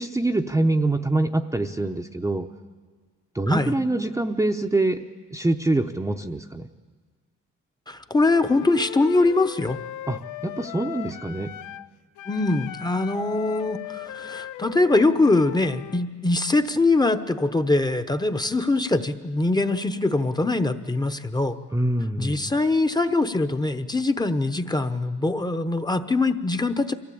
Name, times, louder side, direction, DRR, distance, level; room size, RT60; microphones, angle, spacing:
voice 1, 0.0-2.5 3.3-5.0 5.3-6.7 10.1-11.5 21.7-22.5, right 2 dB, 10° right, 4 dB, 0.8 m, -25 dB
voice 2, 7.9-9.8 12.3-21.6 22.2-26.9, left 2 dB, 15° left, 9 dB, 0.9 m, -23 dB
Wind instrument woodwind instrument, 8.2-11.9 12.2-16.1, left 13 dB, 80° left, 0.6 m, -38 dB
23.5 x 15.5 x 8.5 m, 1.5 s
cardioid pair, 90°, 30 cm